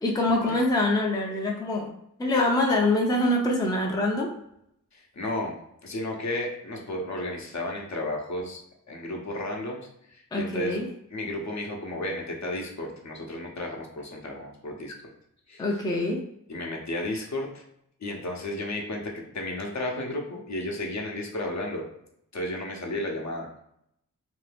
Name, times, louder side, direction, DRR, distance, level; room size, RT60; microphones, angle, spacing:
voice 1, 0.0-1.9 2.2-4.3 10.3-10.9 15.6-16.2, left 2 dB, 10° left, 0 dB, 0.4 m, -24 dB
voice 2, 4.9-5.5 5.8-8.6 8.9-9.8 10.1-10.8 11.1-14.9 15.5-15.6 16.5-17.6 18.0-21.8 22.3-23.5, left 1 dB, 50° left, 0 dB, 0.7 m, -33 dB
2.7 x 2.3 x 3.3 m, 0.75 s
wide cardioid pair, 65°, 35 cm